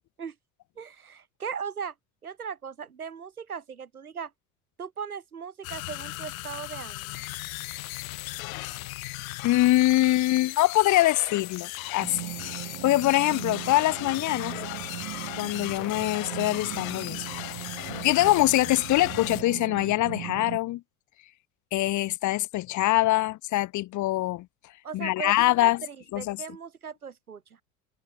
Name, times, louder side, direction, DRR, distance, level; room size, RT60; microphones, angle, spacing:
voice 1, 0.8-1.9 2.2-4.3 4.8-7.2 24.8-25.3 25.6-27.6, right 6 dB, 90° right, 1.9 m, -38 dB
sound 1, 5.6-19.4, left 21 dB, 70° left, 2.0 m, -37 dB
voice 2, 9.4-14.6 15.4-17.2 18.0-20.8 21.7-24.5 24.9-25.8 26.1-26.4, left 16 dB, 45° left, 0.9 m, -24 dB
sound 2, 12.0-20.6, right 27 dB, 65° right, 0.6 m, -39 dB
figure-of-eight pair, 65°, 43 cm